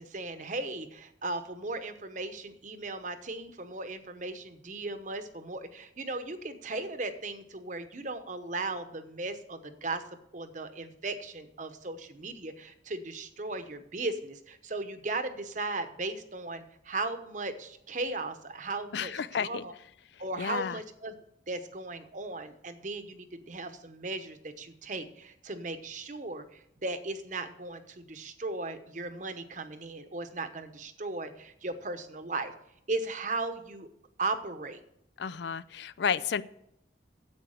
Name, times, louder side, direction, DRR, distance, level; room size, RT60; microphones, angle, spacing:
voice 1, 0.0-10.0 10.3-19.7 20.2-21.1 21.5-32.5 32.9-33.9 34.2-34.8, right 2 dB, 45° right, 9 dB, 1.0 m, -37 dB
voice 2, 18.9-19.6 20.4-20.8 35.2-36.4, left 7 dB, 70° left, 17 dB, 0.4 m, -31 dB
9.7 x 8.1 x 6.5 m, 0.78 s
head